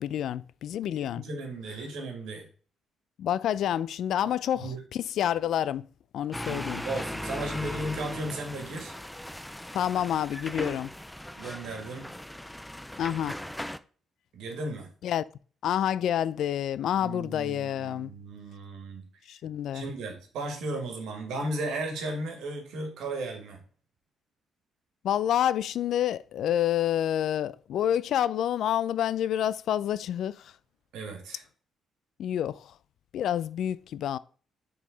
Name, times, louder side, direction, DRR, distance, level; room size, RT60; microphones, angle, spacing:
voice 1, 0.0-1.2 3.2-5.9 6.1-6.8 9.7-10.9 13.0-13.4 15.0-15.2 15.6-18.1 19.3-19.9 25.0-30.5 32.2-32.7 33.1-34.2, left 10 dB, 75° left, 0.3 m, -28 dB
voice 2, 1.1-2.5 4.2-4.8 6.5-8.9 11.4-12.1 14.3-14.9 17.0-19.1 19.7-23.6 30.9-31.4, right 2 dB, 85° right, 1.8 m, -35 dB
sound 1, 6.3-13.8, left 1 dB, 5° left, 0.4 m, -38 dB
7.4 x 4.0 x 3.9 m
cardioid pair, 90°, 0 cm